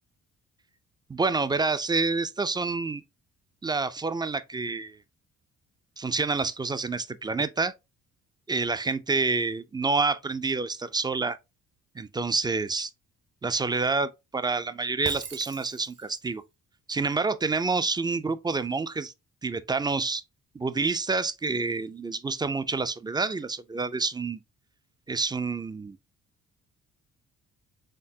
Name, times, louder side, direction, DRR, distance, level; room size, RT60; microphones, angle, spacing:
voice 1, 1.1-3.0 3.6-5.0 6.0-7.7 8.5-11.4 12.0-12.9 13.4-16.4 16.9-19.1 19.4-20.2 20.5-24.4 25.1-26.0, right 4 dB, 15° right, 0.3 m, -28 dB
Shatter, 15.0-16.3, right 6 dB, 40° right, 0.7 m, -41 dB
4.3 x 3.4 x 2.7 m
cardioid pair, 90°, 30 cm